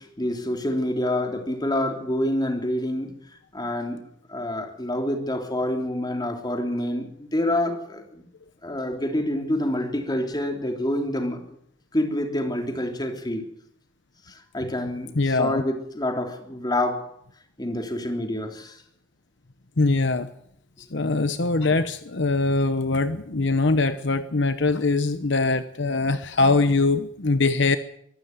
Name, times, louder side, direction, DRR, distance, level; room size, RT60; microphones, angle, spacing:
voice 1, 0.0-3.2 3.5-8.2 8.6-11.4 11.9-13.4 14.3-17.1 17.6-18.8, left 1 dB, 20° left, 4 dB, 3.2 m, -27 dB
voice 2, 15.1-15.6 19.8-20.3 20.8-27.8, left 3 dB, 65° left, 11 dB, 1.0 m, -22 dB
24.0 x 12.5 x 9.6 m, 0.73 s
head